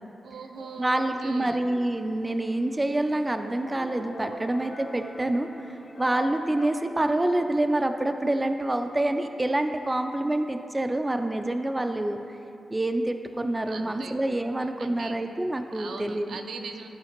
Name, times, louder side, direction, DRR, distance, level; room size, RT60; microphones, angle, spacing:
voice 1, 0.2-1.6 13.7-14.2 14.8-15.2 15.7-16.9, right 4 dB, 70° right, 5 dB, 0.5 m, -40 dB
sound 1, 0.5-6.9, left 2 dB, 45° left, 0.7 m, -44 dB
voice 2, 0.8-12.2 12.7-16.4, right 1 dB, 15° right, 6 dB, 0.3 m, -27 dB
13.0 x 5.0 x 2.9 m, 2.7 s
wide cardioid pair, 115°, 0 cm